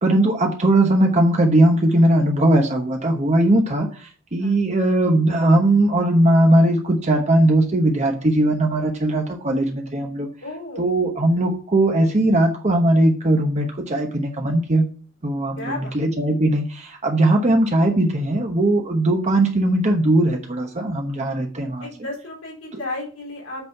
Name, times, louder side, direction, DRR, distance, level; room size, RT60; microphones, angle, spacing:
voice 1, 0.0-3.9 4.3-10.3 10.8-14.9 15.2-21.9, right 1 dB, 35° right, 2 dB, 0.9 m, -19 dB
voice 2, 10.4-10.9 15.6-15.9 21.8-23.7, left 2 dB, 85° left, -2 dB, 3.9 m, -33 dB
8.1 x 4.2 x 5.5 m, 0.41 s
head